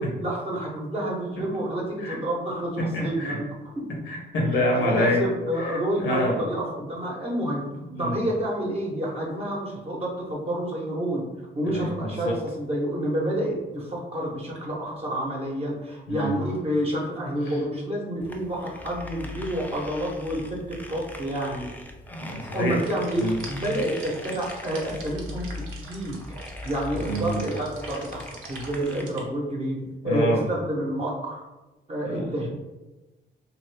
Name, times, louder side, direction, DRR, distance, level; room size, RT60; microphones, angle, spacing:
voice 1, 0.0-3.5 3.8-3.9 4.7-7.7 8.0-11.2 11.5-21.7 22.5-26.2 26.6-28.2 28.5-29.8 30.0-31.4 31.9-32.5, right 1 dB, 30° right, -3 dB, 0.8 m, -29 dB
voice 2, 2.8-3.4 4.1-5.2 5.6-6.4 7.9-8.1 11.6-12.4 16.1-16.3 22.1-22.8 23.2-23.4 27.0-27.4 30.0-30.4 32.0-32.2, left 1 dB, 90° left, -1 dB, 0.9 m, -27 dB
sound 1, 18.2-29.0, left 2 dB, 10° left, 0.4 m, -40 dB
sound 2, 22.8-29.2, right 3 dB, 85° right, 0.7 m, -44 dB
2.6 x 2.5 x 3.3 m, 1.1 s
cardioid pair, 90°, 20 cm